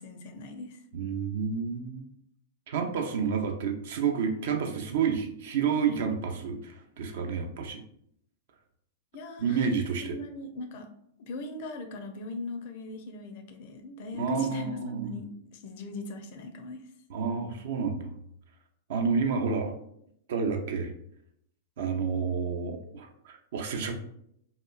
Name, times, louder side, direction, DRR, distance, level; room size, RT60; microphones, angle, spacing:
voice 1, 0.0-0.8 9.1-9.7 10.0-10.9 11.2-16.9 17.3-17.5, left 2 dB, 50° left, 6 dB, 0.4 m, -40 dB
voice 2, 0.9-2.1 2.7-7.8 9.4-10.2 14.1-15.1 17.1-18.1 18.9-19.7 20.3-20.9 21.8-23.9, right 6 dB, 60° right, 4 dB, 0.4 m, -29 dB
2.8 x 2.3 x 2.3 m, 0.72 s
figure-of-eight pair, 95°, 0 cm